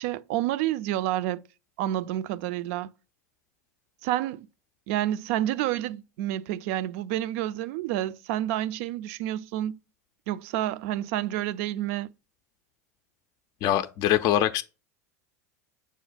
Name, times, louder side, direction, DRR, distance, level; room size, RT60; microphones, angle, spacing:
voice 1, 0.0-1.4 1.8-2.9 4.0-4.5 4.9-9.8 10.3-12.1, right 13 dB, 55° right, 0.4 m, -29 dB
voice 2, 13.6-14.6, left 12 dB, 45° left, 0.4 m, -23 dB
6.0 x 2.1 x 4.0 m
figure-of-eight pair, 80°, 9 cm